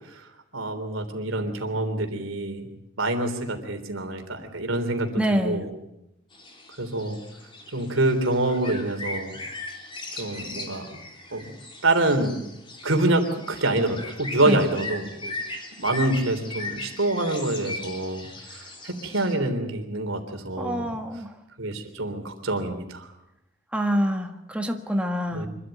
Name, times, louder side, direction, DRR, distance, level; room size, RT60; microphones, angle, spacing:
voice 1, 0.5-2.7 3.0-5.7 6.8-7.2 7.7-9.3 10.1-10.9 11.3-11.5 11.8-12.4 12.8-15.4 15.8-20.9 21.6-23.1 25.3-25.5, right 2 dB, 85° right, 6 dB, 3.5 m, -26 dB
voice 2, 5.2-5.7 14.4-14.6 20.6-21.3 23.7-25.5, equal, 5° right, 3 dB, 1.6 m, -26 dB
sound 1, 6.3-19.3, left 2 dB, 25° left, 3.4 m, -38 dB
25.5 x 13.0 x 9.2 m, 0.85 s
head